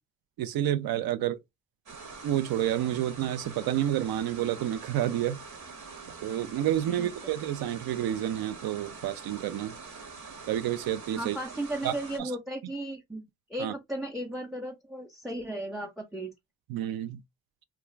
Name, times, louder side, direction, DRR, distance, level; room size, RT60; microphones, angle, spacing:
voice 1, 0.4-1.4 2.2-5.4 6.2-9.8 10.5-11.4 11.8-11.9 12.2-12.3 13.6-13.7 16.7-17.2, right 12 dB, 80° right, 0.5 m, -29 dB
sound 1, 1.9-12.2, right 4 dB, 55° right, 1.0 m, -45 dB
voice 2, 11.2-13.2 13.5-16.3, right 1 dB, ahead, 0.5 m, -35 dB
2.3 x 2.3 x 3.1 m
cardioid pair, 60°, 36 cm